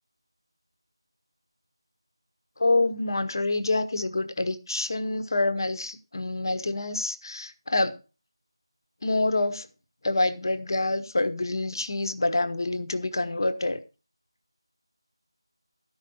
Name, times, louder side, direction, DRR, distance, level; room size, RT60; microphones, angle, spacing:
voice 1, 2.6-7.9 9.0-9.7 10.0-13.8, left 2 dB, 55° left, 1.3 m, -26 dB
13.5 x 5.7 x 5.4 m
figure-of-eight pair, 170°, 3 cm